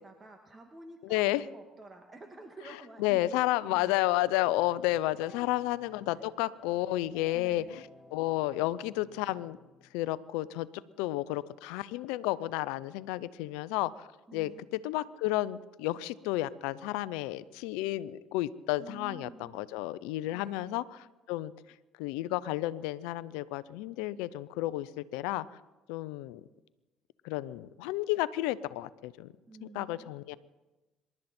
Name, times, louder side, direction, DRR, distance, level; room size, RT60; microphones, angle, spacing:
voice 1, 0.0-3.4 3.6-4.0 5.3-5.5 6.1-6.3 7.3-7.8 14.3-14.6 18.8-19.6 20.3-20.8 29.5-30.1, right 2 dB, 25° right, 4 dB, 1.9 m, -50 dB
voice 2, 1.0-1.4 3.0-7.8 8.1-9.6 9.9-10.7 11.0-21.0 21.3-21.5 22.0-25.5 25.9-26.4 27.2-29.3 29.7-30.3, left 16 dB, 80° left, 17 dB, 0.6 m, -32 dB
sound 1, 4.4-10.6, left 4 dB, 30° left, 4.0 m, -58 dB
27.0 x 12.0 x 4.4 m, 1.1 s
hypercardioid pair, 65°, 0 cm